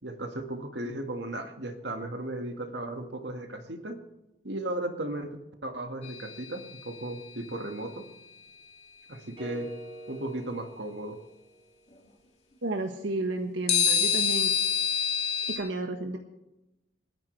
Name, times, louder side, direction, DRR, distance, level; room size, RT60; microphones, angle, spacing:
voice 1, 0.0-4.0 4.4-8.0 9.1-9.7 10.1-11.2, right 1 dB, 65° right, 5 dB, 1.9 m, -36 dB
sound 1, 6.0-7.3 13.7-15.6, left 7 dB, 35° left, 2.6 m, -27 dB
sound 2, 9.4-11.7, right 2 dB, 30° right, 4.5 m, -45 dB
voice 2, 12.6-14.5 15.5-16.2, right 2 dB, 85° right, 3 dB, 1.4 m, -32 dB
28.0 x 10.5 x 3.3 m, 1.0 s
head